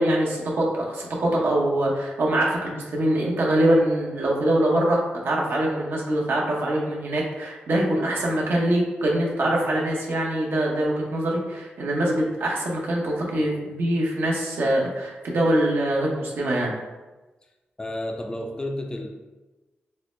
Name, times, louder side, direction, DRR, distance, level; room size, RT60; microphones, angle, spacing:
voice 1, 0.0-16.7, right 1 dB, 75° right, -3 dB, 0.8 m, -23 dB
voice 2, 17.8-19.1, left 1 dB, 20° left, 3 dB, 0.4 m, -31 dB
4.3 x 2.1 x 3.1 m, 1.2 s
cardioid pair, 65°, 4 cm